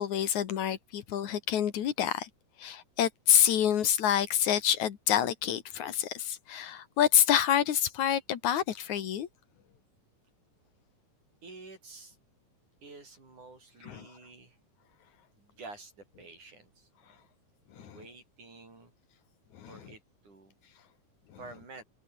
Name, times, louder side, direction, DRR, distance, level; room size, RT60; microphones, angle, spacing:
voice 1, 0.0-2.3 2.6-9.3 13.8-14.1 17.8-18.0 19.5-19.8, left 10 dB, 60° left, 2.9 m, -27 dB
voice 2, 11.4-12.2 12.8-14.6 15.3-17.2 17.8-18.9 19.7-20.5 21.4-21.8, right 3 dB, 60° right, 9.6 m, -50 dB
omnidirectional pair, 3.9 m